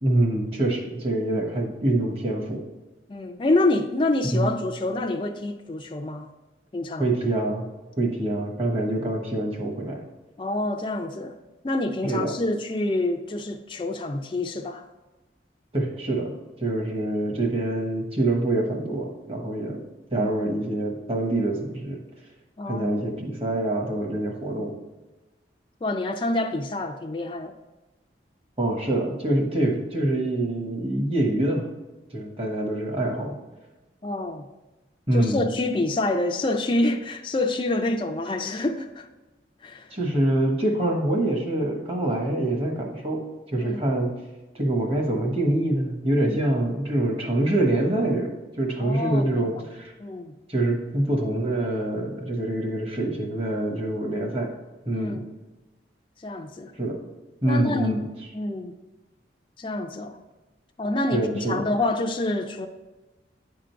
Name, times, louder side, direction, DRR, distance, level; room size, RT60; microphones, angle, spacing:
voice 1, 0.0-2.6 4.2-4.5 7.0-7.7 8.0-10.0 12.0-12.3 15.7-16.3 16.6-19.8 20.1-22.0 22.7-24.7 28.6-31.7 32.1-33.4 35.1-35.4 39.9-43.2 43.5-44.1 44.5-49.9 50.5-54.5 54.9-55.2 56.8-57.0 57.4-58.0 61.1-61.6, right 1 dB, 35° right, 1.3 m, -25 dB
voice 2, 3.1-6.3 6.7-7.1 10.4-11.3 11.6-14.9 20.1-20.3 22.6-23.0 25.8-27.5 34.0-34.4 35.1-39.1 39.6-39.9 43.5-43.9 46.2-46.4 48.8-49.5 50.0-50.3 54.9-55.3 56.2-56.7 57.4-58.7 59.6-60.2 60.8-62.7, left 2 dB, 30° left, 0.4 m, -27 dB
9.7 x 3.8 x 4.5 m
head